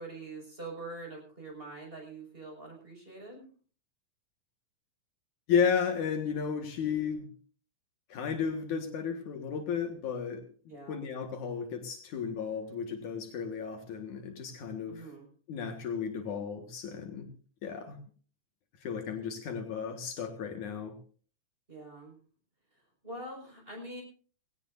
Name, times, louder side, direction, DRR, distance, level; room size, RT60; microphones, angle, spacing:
voice 1, 0.0-3.5 10.7-11.0 14.9-15.3 21.7-22.2 22.8-24.0, right 2 dB, 15° right, 1 dB, 5.9 m, -44 dB
voice 2, 5.5-7.3 8.1-10.5 10.9-15.0 15.5-17.3 17.6-18.0 18.8-21.0, left 6 dB, 70° left, 5 dB, 3.0 m, -33 dB
20.0 x 17.0 x 2.6 m, 0.40 s
omnidirectional pair, 3.7 m